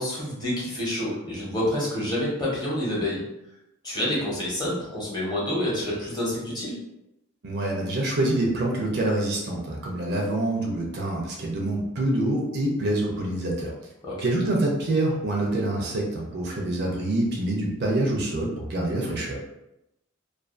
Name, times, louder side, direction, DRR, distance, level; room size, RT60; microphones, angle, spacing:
voice 1, 0.0-3.2 3.8-6.7 14.0-14.3, left 1 dB, 20° left, -6 dB, 0.8 m, -28 dB
voice 2, 7.4-13.7 14.2-19.4, right 1 dB, 55° right, -1 dB, 0.5 m, -26 dB
2.4 x 2.4 x 2.4 m, 0.88 s
head